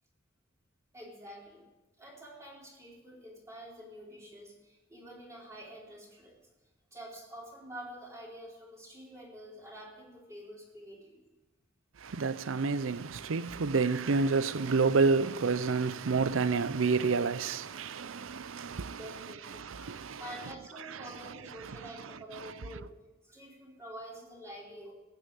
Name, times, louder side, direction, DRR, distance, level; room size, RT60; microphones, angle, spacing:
voice 1, 0.9-1.6 2.0-6.4 6.9-11.3 18.7-19.9 20.2-22.9 23.2-24.9, equal, 15° right, 4.4 m, -48 dB
voice 2, 12.0-19.0 19.5-20.2 20.9-21.0 21.7-21.8, right 4 dB, 80° right, 0.6 m, -29 dB
15.5 x 7.4 x 9.0 m
head